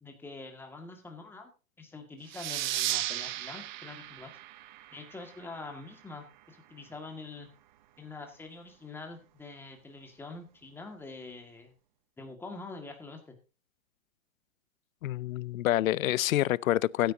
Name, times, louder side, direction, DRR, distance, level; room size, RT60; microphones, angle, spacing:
voice 1, 0.0-1.5 1.8-4.3 4.9-7.5 8.0-11.7 12.2-13.4, left 3 dB, 5° left, 1.8 m, -45 dB
sound 1, 2.3-5.5, right 14 dB, 35° right, 0.7 m, -35 dB
voice 2, 15.0-17.1, left 14 dB, 85° left, 0.5 m, -27 dB
16.0 x 10.0 x 2.7 m
hypercardioid pair, 150°, 40 cm